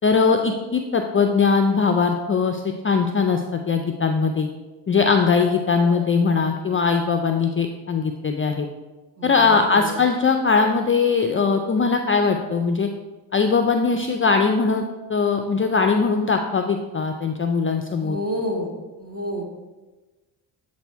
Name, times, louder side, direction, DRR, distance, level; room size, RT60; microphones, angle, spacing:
voice 1, 0.0-4.5 4.9-8.7 9.2-12.9 13.3-14.8 15.1-18.2, left 5 dB, 25° left, 5 dB, 0.4 m, -20 dB
voice 2, 5.4-5.9 9.2-10.0 17.9-18.7 19.0-19.4, equal, 30° right, 0 dB, 1.6 m, -30 dB
7.9 x 2.7 x 4.5 m, 1.2 s
supercardioid pair, 55°, 49 cm